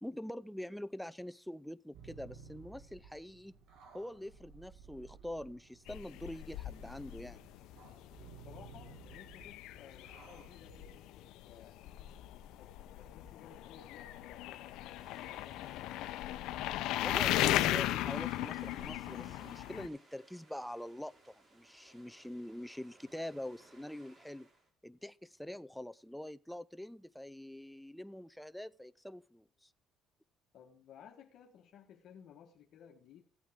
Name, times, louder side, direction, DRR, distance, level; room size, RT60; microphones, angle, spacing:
voice 1, 0.0-3.6 3.9-7.4 17.0-24.5 24.8-29.7, left 1 dB, 5° left, 0.4 m, -44 dB
sound 1, 1.9-10.9, right 6 dB, 75° right, 2.2 m, -56 dB
sound 2, 5.9-19.9, left 14 dB, 80° left, 0.7 m, -37 dB
voice 2, 8.2-11.8 12.6-12.7 13.0-14.6 15.1-16.0 30.5-33.2, left 8 dB, 65° left, 1.5 m, -57 dB
sound 3, 14.7-24.7, right 2 dB, 40° right, 4.2 m, -62 dB
15.0 x 8.5 x 3.6 m
cardioid pair, 105°, 0 cm